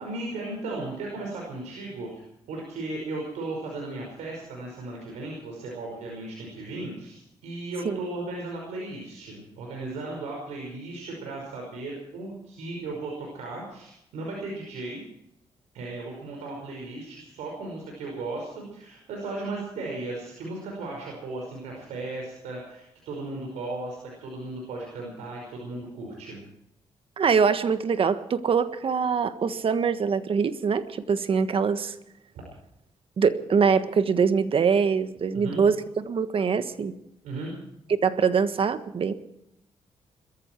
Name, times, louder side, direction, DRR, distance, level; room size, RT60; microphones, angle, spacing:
voice 1, 0.0-15.0 15.7-26.4 35.3-35.6 37.2-37.5, right 2 dB, 85° right, -1 dB, 5.3 m, -36 dB
voice 2, 27.2-31.9 33.2-36.9 37.9-39.1, right 6 dB, 55° right, 11 dB, 1.5 m, -23 dB
22.0 x 14.0 x 4.6 m, 0.79 s
cardioid pair, 70°, 12 cm